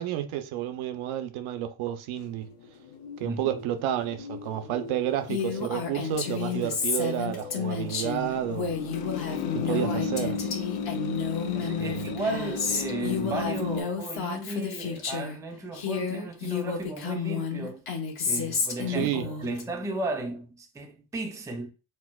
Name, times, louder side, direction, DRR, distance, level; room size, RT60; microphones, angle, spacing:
voice 1, 0.0-2.5 3.2-8.7 9.5-10.4 11.8-12.1 18.9-19.6, right 11 dB, 80° right, 0.6 m, -31 dB
sound 1, 2.2-13.8, left 5 dB, 90° left, 0.6 m, -36 dB
Female speech woman speaking, 5.3-15.4 15.7-19.6, left 6 dB, 50° left, 1.1 m, -31 dB
voice 2, 11.5-17.8 18.2-21.7, right 2 dB, 5° right, 0.4 m, -35 dB
4.3 x 2.0 x 2.2 m
cardioid pair, 105°, 48 cm